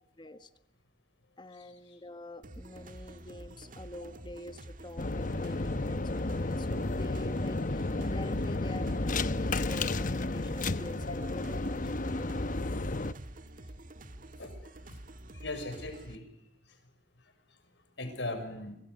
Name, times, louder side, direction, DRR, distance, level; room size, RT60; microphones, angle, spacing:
voice 1, 0.2-0.5 1.4-11.6 12.1-12.3, left 1 dB, 25° left, 11 dB, 1.5 m, -46 dB
sound 1, 2.4-16.2, right 1 dB, 45° right, 1.6 m, -48 dB
sound 2, 5.0-13.1, left 2 dB, 45° left, 1.0 m, -32 dB
voice 2, 15.3-16.3 18.0-18.8, left 2 dB, 70° left, 7 dB, 6.5 m, -39 dB
25.0 x 24.0 x 8.2 m, 0.77 s
head